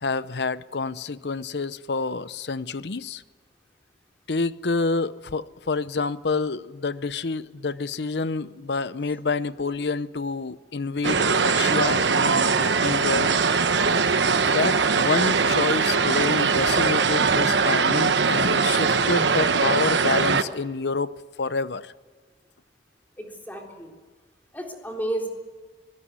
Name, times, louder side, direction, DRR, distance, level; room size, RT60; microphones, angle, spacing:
voice 1, 0.0-3.2 4.3-13.3 14.5-21.1 21.4-21.9, left 4 dB, 70° left, 0.7 m, -28 dB
sound 1, 11.0-20.4, right 5 dB, 85° right, 1.1 m, -21 dB
voice 2, 23.2-23.9 24.5-25.3, right 1 dB, 10° left, 3.6 m, -32 dB
24.0 x 17.5 x 9.6 m
head